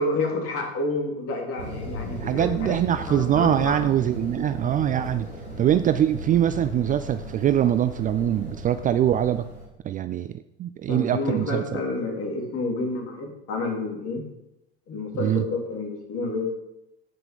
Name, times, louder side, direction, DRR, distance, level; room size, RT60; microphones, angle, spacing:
voice 1, 0.0-2.8 3.1-3.8 10.9-14.2 14.9-16.5, left 2 dB, 45° left, 1 dB, 3.3 m, -29 dB
sound 1, 1.6-9.6, equal, 85° right, 4.7 m, -36 dB
voice 2, 2.2-5.3 5.6-9.4 9.8-11.6 15.2-15.4, right 11 dB, 25° right, 12 dB, 0.4 m, -23 dB
16.5 x 5.9 x 5.2 m, 0.89 s
figure-of-eight pair, 70°, 32 cm